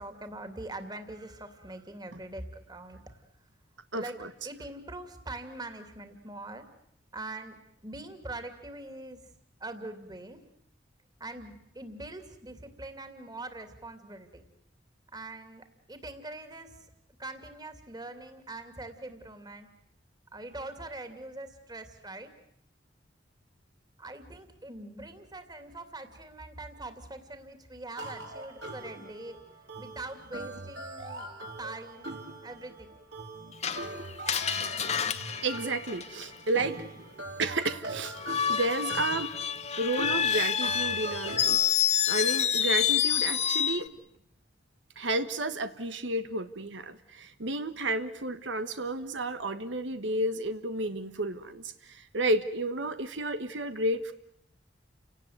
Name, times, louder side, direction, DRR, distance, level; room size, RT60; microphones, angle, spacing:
voice 1, 0.0-3.2 3.9-6.6 7.1-7.6 7.8-9.2 9.6-10.4 11.2-14.4 15.1-16.9 17.2-19.7 20.3-22.3 24.0-29.4 29.8-31.3 31.6-32.1 32.4-33.0, right 2 dB, 20° right, 8 dB, 2.7 m, -43 dB
voice 2, 3.9-4.3 35.4-36.8 37.4-38.2 38.5-39.4 39.8-43.9 45.0-54.1, right 2 dB, 85° right, 10 dB, 1.4 m, -31 dB
sound 1, 28.0-41.7, right 2 dB, 70° right, 4.5 m, -42 dB
Screech, 33.6-36.5 38.2-43.9, left 9 dB, 40° left, 1.3 m, -28 dB
30.0 x 18.0 x 9.4 m, 0.73 s
head